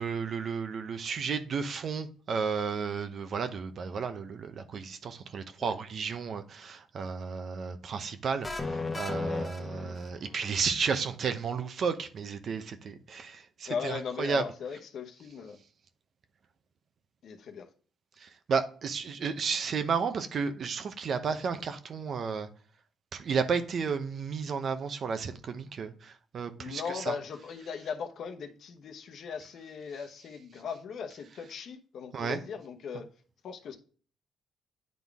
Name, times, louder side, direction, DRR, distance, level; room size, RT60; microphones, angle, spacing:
voice 1, 0.0-14.4 18.2-22.5 23.1-27.1 32.1-32.4, right 5 dB, 55° right, 0.8 m, -33 dB
sound 1, 8.4-10.4, left 3 dB, 15° left, 1.0 m, -35 dB
voice 2, 13.7-15.6 17.2-17.7 26.6-33.1 33.4-33.8, left 6 dB, 65° left, 1.0 m, -38 dB
9.4 x 3.9 x 3.5 m
cardioid pair, 90°, 0 cm